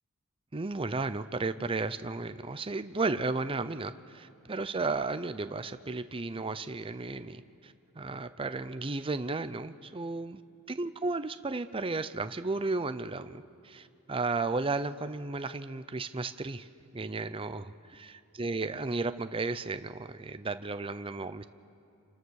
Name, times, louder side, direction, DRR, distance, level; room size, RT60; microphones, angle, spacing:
voice 1, 0.5-10.4 10.7-21.4, right 3 dB, 25° right, 11 dB, 0.6 m, -34 dB
28.5 x 27.5 x 6.5 m, 2.7 s
head